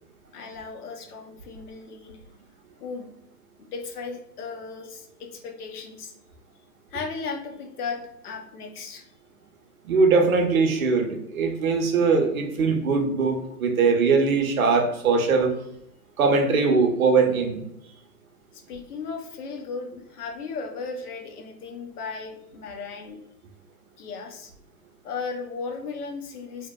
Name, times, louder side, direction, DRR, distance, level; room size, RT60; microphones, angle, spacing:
voice 1, 0.3-2.2 2.8-3.1 3.6-6.1 6.9-9.1 18.5-23.2 24.0-24.5 25.0-26.7, left 4 dB, 70° left, 3 dB, 0.7 m, -36 dB
voice 2, 9.8-15.5 16.2-17.6, right 4 dB, 60° right, 4 dB, 0.7 m, -21 dB
2.7 x 2.1 x 2.2 m, 0.78 s
hypercardioid pair, 140°, 47 cm